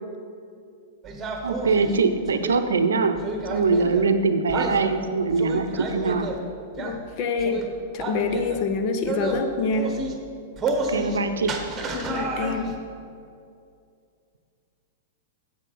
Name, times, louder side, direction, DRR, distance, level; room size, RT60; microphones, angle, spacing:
sound 1, 1.0-2.6 3.2-4.1 4.5-4.8 5.3-6.4 6.7-7.0 7.4-7.7 8.0-8.6 9.0-9.4 9.7-10.1 10.6-11.2 11.4-12.8, right 3 dB, 20° right, 1.3 m, -30 dB
voice 1, 1.4-3.2 3.5-6.3 10.9-11.5, right 4 dB, 80° right, 8 dB, 0.6 m, -22 dB
voice 2, 6.8-7.6 7.9-10.0 11.9-12.8, left 4 dB, 45° left, 7 dB, 0.9 m, -26 dB
8.3 x 7.8 x 5.4 m, 2.4 s
hypercardioid pair, 105°, 0 cm